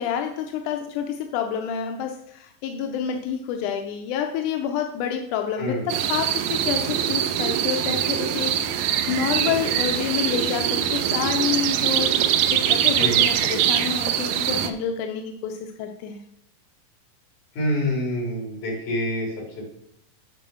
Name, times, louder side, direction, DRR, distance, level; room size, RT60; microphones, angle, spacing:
voice 1, 0.0-16.2, left 8 dB, 75° left, 4 dB, 2.0 m, -28 dB
voice 2, 5.6-5.9 13.0-13.3 17.6-19.6, equal, 60° left, -2 dB, 4.4 m, -27 dB
sound 1, 5.9-14.7, right 10 dB, 90° right, 1.6 m, -23 dB
9.1 x 4.7 x 6.4 m, 0.72 s
omnidirectional pair, 4.0 m